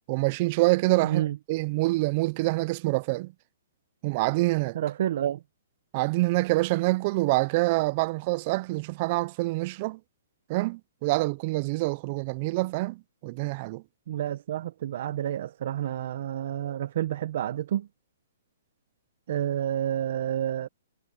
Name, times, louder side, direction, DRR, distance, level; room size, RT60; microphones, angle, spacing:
voice 1, 0.1-1.2 1.5-3.3 4.0-4.8 5.9-10.0 10.5-13.8, right 22 dB, 35° right, 0.5 m, -26 dB
voice 2, 1.0-1.4 4.7-5.4 14.1-17.9 19.3-20.7, right 11 dB, 55° right, 0.9 m, -29 dB
hypercardioid pair, 155°, 0 cm